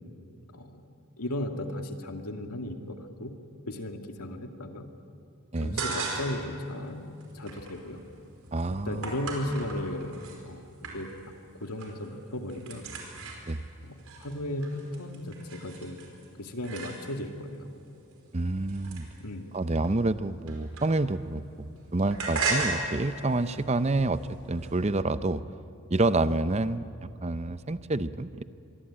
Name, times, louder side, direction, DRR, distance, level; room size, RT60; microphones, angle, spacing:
voice 1, 0.5-0.9 1.2-3.3 3.7-4.9 5.6-8.0 8.7-10.1 10.4-10.6 10.9-11.3 11.6-12.9 13.8-13.9 14.2-16.0 16.4-17.7 19.2-19.5, left 1 dB, 90° left, 5 dB, 2.2 m, -35 dB
voice 2, 5.5-5.8 8.5-9.1 13.5-13.6 18.3-19.1 19.5-25.4 25.9-28.4, right 2 dB, 30° right, 13 dB, 0.6 m, -28 dB
sound 1, 5.6-6.5 6.9-10.4 10.8-11.4 11.6-12.1 12.3-17.4 18.0-21.3 21.5-24.7, right 3 dB, 75° right, 4.9 m, -37 dB
26.0 x 23.0 x 8.7 m, 2.5 s
head